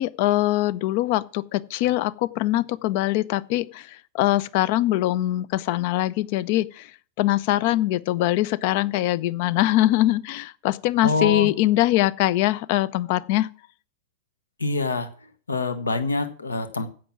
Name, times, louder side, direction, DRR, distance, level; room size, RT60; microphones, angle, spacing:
voice 1, 0.0-6.9 7.2-13.5, left 15 dB, 50° left, 0.5 m, -22 dB
voice 2, 11.0-11.5 14.6-15.1 15.5-16.9, left 3 dB, 75° left, 1.1 m, -25 dB
15.5 x 6.1 x 6.0 m
figure-of-eight pair, 90°, 0 cm